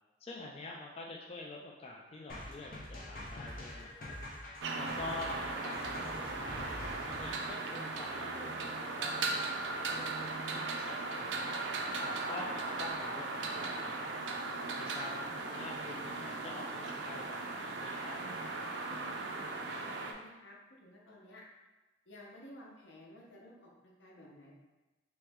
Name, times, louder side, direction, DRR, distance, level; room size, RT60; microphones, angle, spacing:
voice 1, 0.2-4.2 4.7-11.6 12.0-14.2 14.8-18.2, left 2 dB, 35° left, -1 dB, 0.3 m, -47 dB
sound 1, 2.3-7.5, left 1 dB, 50° left, 0.7 m, -45 dB
sound 2, 4.6-20.1, right 3 dB, 70° right, 0.4 m, -38 dB
voice 2, 18.9-21.4 22.1-24.5, left 1 dB, 80° left, -3 dB, 0.8 m, -55 dB
3.1 x 3.0 x 3.4 m, 1.1 s
head